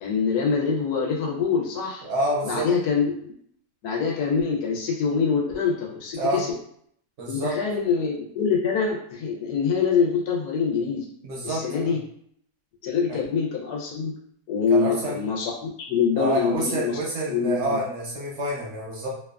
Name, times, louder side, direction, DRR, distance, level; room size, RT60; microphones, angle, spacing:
voice 1, 0.0-2.0 2.4-3.3 3.8-6.5 7.3-11.0 11.4-12.0 12.8-14.2 14.5-17.0 17.3-17.8, left 5 dB, 85° left, -1 dB, 1.2 m, -25 dB
voice 2, 2.0-2.7 6.2-6.4 7.2-7.6 11.2-12.0 13.1-13.2 14.7-15.2 16.2-19.1, right 1 dB, 60° right, -4 dB, 0.8 m, -28 dB
2.9 x 2.2 x 2.3 m, 0.66 s
omnidirectional pair, 1.7 m